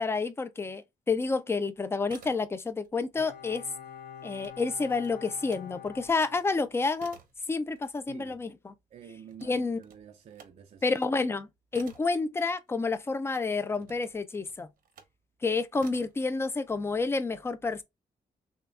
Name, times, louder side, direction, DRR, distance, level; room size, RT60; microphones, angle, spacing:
voice 1, 0.0-3.6 4.2-7.2 7.5-8.7 9.4-9.8 10.8-14.7 15.4-17.8, left 4 dB, 15° left, 0.4 m, -29 dB
sound 1, 1.9-2.9 3.2-5.7 6.1-13.1 13.7-15.2 15.8-16.3, right 6 dB, 75° right, 1.0 m, -55 dB
Bowed string instrument, 3.2-6.9 7.2-7.3, left 8 dB, 70° left, 1.2 m, -46 dB
voice 2, 8.9-10.8, right 8 dB, 50° right, 0.5 m, -49 dB
6.3 x 2.3 x 2.5 m
wide cardioid pair, 155°, 15 cm